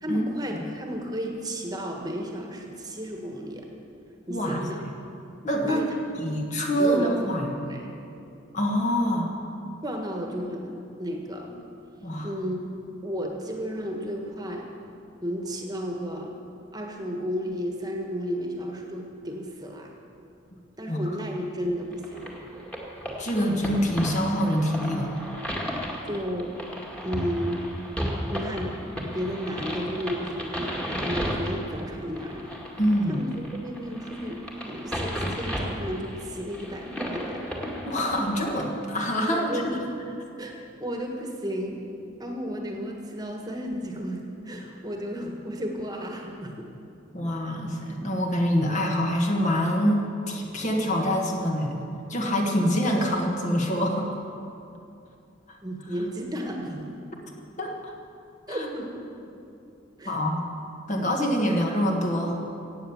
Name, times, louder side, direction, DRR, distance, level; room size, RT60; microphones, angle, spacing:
voice 1, 0.0-3.7 4.3-4.8 5.7-5.9 6.8-7.2 7.6-7.9 9.8-11.6 12.2-12.6 13.0-14.7 15.2-16.4 16.7-19.9 20.8-22.4 26.0-26.5 27.0-27.6 28.3-28.7 29.1-32.5 33.1-33.3 33.6-37.4 39.3-39.8 40.4-40.5 40.8-41.8 42.2-46.5 55.6-56.9 58.5-59.1 60.0-60.2, equal, 20° right, 1 dB, 1.5 m, -33 dB
voice 2, 4.3-4.6 5.4-5.9 6.2-7.6 8.5-9.4 12.0-12.3 20.9-21.0 23.2-25.1 32.8-33.2 37.8-39.6 47.1-51.7 52.1-54.1 55.5-55.6 57.6-57.9 58.5-58.7 60.1-60.4 60.9-62.4, equal, 40° left, 1 dB, 1.6 m, -25 dB
sound 1, 21.9-38.6, equal, 5° left, 1.9 m, -34 dB
16.0 x 8.9 x 7.2 m, 2.7 s
head